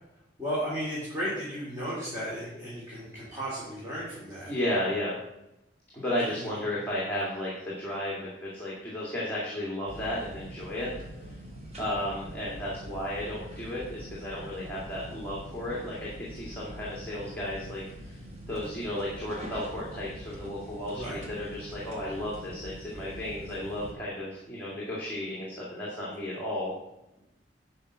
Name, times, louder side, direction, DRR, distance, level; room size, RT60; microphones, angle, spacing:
voice 1, 0.4-4.5 6.3-6.6 20.9-21.2, equal, 15° right, -9 dB, 2.9 m, -34 dB
voice 2, 4.5-5.1 5.9-10.9 11.8-18.2 18.5-26.7, left 1 dB, 10° left, -6 dB, 2.2 m, -33 dB
sound 1, 9.9-23.9, equal, 35° right, 1.8 m, -44 dB
10.5 x 5.6 x 5.0 m, 0.90 s
head